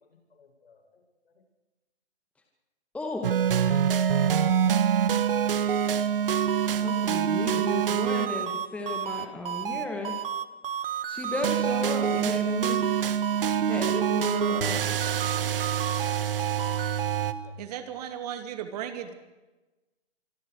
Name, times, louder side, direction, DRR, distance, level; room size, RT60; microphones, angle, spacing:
voice 1, 0.3-1.0 3.9-4.5 5.3-7.4 10.2-10.6 12.1-12.3 13.3-13.7 16.0-16.9 17.4-17.9 18.9-19.1, left 4 dB, 65° left, 2 dB, 7.8 m, -56 dB
voice 2, 2.9-3.4 6.8-10.2 11.1-12.8 13.7-14.8, left 2 dB, 5° left, 2 dB, 2.3 m, -34 dB
sound 1, 3.2-17.3, right 8 dB, 55° right, 1.8 m, -26 dB
voice 3, 17.6-19.1, right 9 dB, 35° right, 9 dB, 2.5 m, -36 dB
26.0 x 25.5 x 4.9 m, 1.1 s
hypercardioid pair, 145°, 33 cm